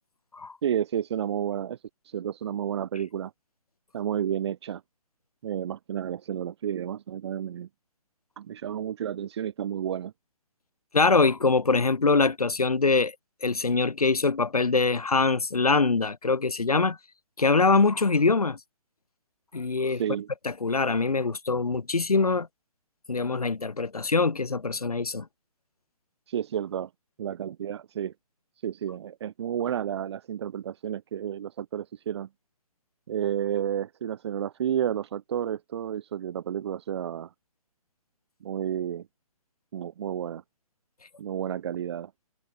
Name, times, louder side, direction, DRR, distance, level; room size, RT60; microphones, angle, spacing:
voice 1, 0.6-3.3 3.9-4.8 5.4-7.7 8.4-10.1 19.8-20.3 26.3-26.9 27.2-28.1 28.6-32.3 33.1-37.3 38.4-39.1 39.7-40.4 41.2-42.1, right 9 dB, 45° right, 3.3 m, -31 dB
voice 2, 10.9-13.2 13.4-17.0 17.4-18.6 19.5-20.0 20.6-22.5 23.1-25.3, left 4 dB, 90° left, 1.8 m, -23 dB
figure-of-eight pair, 145°, 19 cm